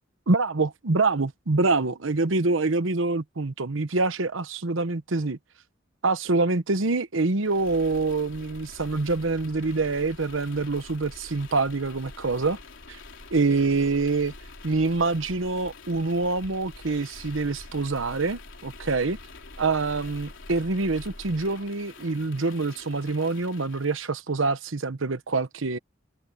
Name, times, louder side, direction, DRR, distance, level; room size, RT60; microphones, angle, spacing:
voice 1, 0.3-5.4 6.0-12.6 12.9-13.0 13.3-14.3 14.6-19.2 19.6-25.8, right 3 dB, 90° right, 1.0 m, -25 dB
sound 1, 7.4-24.1, left 2 dB, 75° left, 3.6 m, -45 dB
head